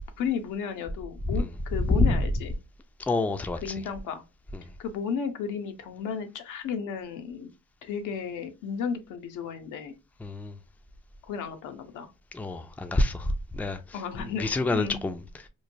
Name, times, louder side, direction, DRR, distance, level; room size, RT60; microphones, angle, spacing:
voice 1, 0.2-2.6 3.6-4.2 4.8-7.5 7.8-9.9 11.2-12.1 13.9-15.0, left 6 dB, 90° left, 0.6 m, -33 dB
voice 2, 3.0-3.7 4.5-4.6 10.2-10.6 12.3-15.5, left 2 dB, 5° left, 0.3 m, -27 dB
3.1 x 2.1 x 2.5 m
cardioid pair, 90°, 30 cm